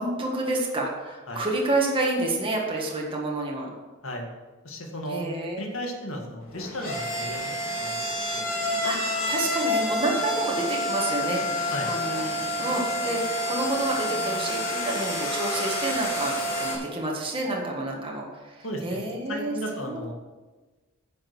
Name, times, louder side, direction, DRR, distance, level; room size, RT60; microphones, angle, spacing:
voice 1, 0.0-3.7 5.1-5.6 8.8-20.0, right 2 dB, 25° right, -1 dB, 1.7 m, -29 dB
voice 2, 4.6-5.3 5.6-7.4 7.8-8.5 11.7-11.9 18.6-19.0 19.3-20.1, equal, 70° left, 2 dB, 2.0 m, -35 dB
sound 1, 6.4-16.7, left 1 dB, 45° left, 3.7 m, -28 dB
9.9 x 6.5 x 6.1 m, 1.2 s
head